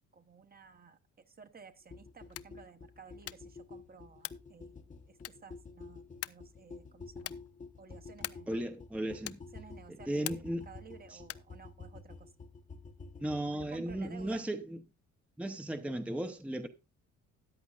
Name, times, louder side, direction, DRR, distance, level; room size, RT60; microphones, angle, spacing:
voice 1, 0.1-1.0 1.2-7.4 7.8-8.5 9.5-12.3 13.5-14.4, right 6 dB, 30° right, 1.0 m, -54 dB
sound 1, 1.9-14.4, left 4 dB, 25° left, 0.9 m, -50 dB
sound 2, 2.2-2.6 3.2-3.6 4.2-4.5 5.2-5.6 6.2-6.5 7.2-7.5 8.2-8.6 9.2-9.6 10.2-10.6 11.2-11.6, left 14 dB, 55° left, 0.4 m, -43 dB
voice 2, 8.5-9.4 10.1-10.6 11.1-11.2 13.2-14.8 15.4-16.7, right 1 dB, 5° right, 0.7 m, -35 dB
13.5 x 9.4 x 2.4 m
cardioid pair, 105°, 30 cm